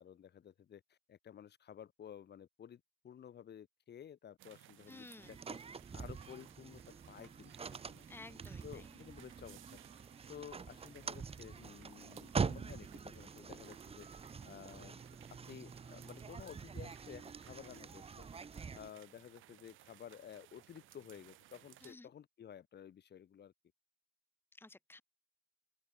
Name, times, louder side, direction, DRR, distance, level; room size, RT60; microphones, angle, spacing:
voice 1, 0.0-6.8 7.1-8.0 8.6-9.8 10.3-14.1 14.4-15.0 15.3-18.3 18.7-23.5, left 9 dB, 60° left, 2.4 m, -53 dB
sound 1, 4.4-21.9, right 15 dB, 85° right, 2.1 m, -61 dB
voice 2, 4.9-5.3 8.1-8.9 21.8-22.1 24.5-25.0, left 2 dB, 10° left, 1.4 m, -54 dB
sound 2, 5.2-18.9, right 5 dB, 30° right, 0.9 m, -45 dB
open air
cardioid pair, 90°, 20 cm